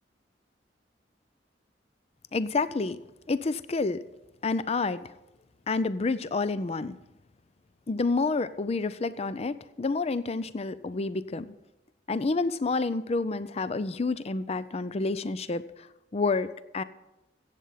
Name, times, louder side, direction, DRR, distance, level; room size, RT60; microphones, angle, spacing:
voice 1, 2.3-3.0 3.3-4.0 4.4-5.1 5.7-7.0 7.9-11.5 12.1-15.6 16.1-16.8, left 3 dB, 35° left, 15 dB, 0.5 m, -29 dB
15.0 x 8.1 x 5.7 m, 0.94 s
head